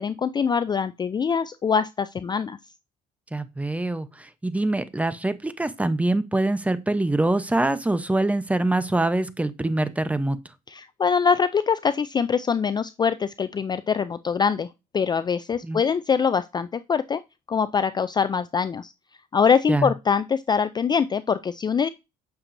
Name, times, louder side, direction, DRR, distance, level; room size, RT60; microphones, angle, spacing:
voice 1, 0.0-2.6 10.7-14.7 14.9-17.2 17.5-18.9 19.3-21.9, left 6 dB, 25° left, 0.4 m, -23 dB
voice 2, 3.3-10.4 15.6-15.8 19.7-19.9, right 2 dB, 10° right, 0.8 m, -24 dB
8.8 x 6.8 x 2.6 m
cardioid pair, 110°, 17 cm